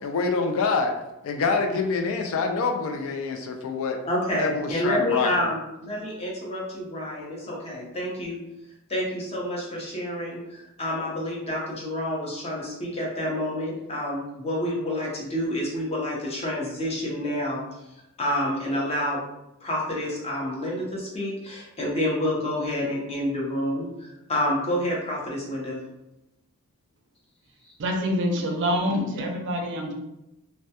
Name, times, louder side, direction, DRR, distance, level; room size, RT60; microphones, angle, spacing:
voice 1, 0.0-0.9 1.2-4.0 4.4-5.3, left 4 dB, 65° left, 4 dB, 0.3 m, -26 dB
voice 2, 4.1-8.4 8.9-17.6 18.2-19.2 19.6-25.8, left 1 dB, 30° left, -4 dB, 0.6 m, -28 dB
voice 3, 27.8-29.9, equal, 55° right, 2 dB, 0.4 m, -26 dB
2.1 x 2.1 x 2.7 m, 0.91 s
head